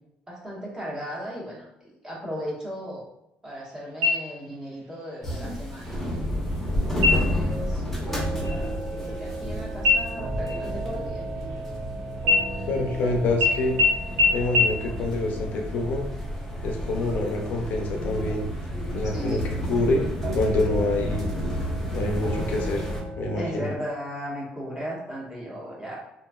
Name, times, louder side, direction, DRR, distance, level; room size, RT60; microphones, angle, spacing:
voice 1, 0.3-3.0 3.4-6.0 7.2-8.8 9.1-11.2 19.1-19.4 23.3-26.0, equal, 15° right, -5 dB, 1.2 m, -36 dB
sound 1, 4.0-4.7 5.1-5.2 5.7-6.2 6.9-7.5 7.9-8.1 8.4-9.5 9.8-11.8 12.2-13.0 13.4-13.5 13.8-13.9 14.2-14.3 14.5-14.6, left 3 dB, 85° right, 0.6 m, -24 dB
sound 2, 5.2-23.0, equal, 5° left, 0.9 m, -31 dB
sound 3, 7.5-23.6, right 2 dB, 55° right, 1.1 m, -38 dB
voice 2, 12.7-13.8 14.3-16.0 16.6-18.5 18.9-19.4 19.7-20.0 20.3-21.3 21.9-22.8 23.2-23.7, left 2 dB, 65° left, 3 dB, 0.5 m, -26 dB
2.9 x 2.6 x 2.3 m, 0.84 s
cardioid pair, 110°, 3 cm